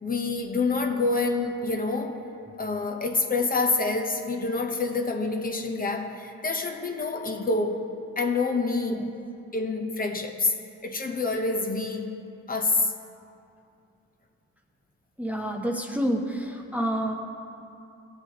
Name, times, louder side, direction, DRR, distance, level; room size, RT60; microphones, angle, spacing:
voice 1, 0.0-2.3 2.6-7.9 8.2-9.1 9.5-10.5 10.8-12.1 12.5-12.9, left 3 dB, 30° left, 3 dB, 1.0 m, -27 dB
voice 2, 15.2-17.1, equal, 5° right, 2 dB, 0.8 m, -28 dB
18.5 x 7.6 x 3.0 m, 2.6 s
cardioid pair, 90°, 30 cm